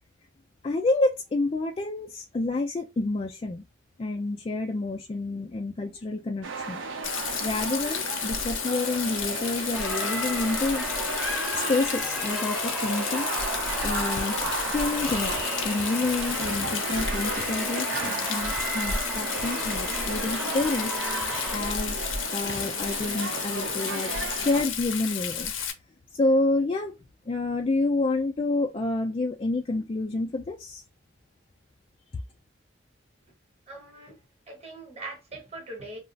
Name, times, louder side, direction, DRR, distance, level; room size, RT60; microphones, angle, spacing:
voice 1, 0.6-3.6 4.0-6.8 7.4-10.9 11.5-13.3 13.8-21.0 21.5-25.5 26.1-26.9 27.3-30.8, left 2 dB, 30° left, 0.3 m, -28 dB
sound 1, 6.4-24.6, right 4 dB, 75° right, 0.6 m, -34 dB
Rain, 7.0-25.7, left 7 dB, 80° left, 0.6 m, -32 dB
sound 2, 9.7-21.6, equal, 5° right, 0.7 m, -35 dB
voice 2, 33.7-34.2 34.5-36.0, right 2 dB, 30° right, 1.0 m, -41 dB
2.4 x 2.0 x 3.8 m
head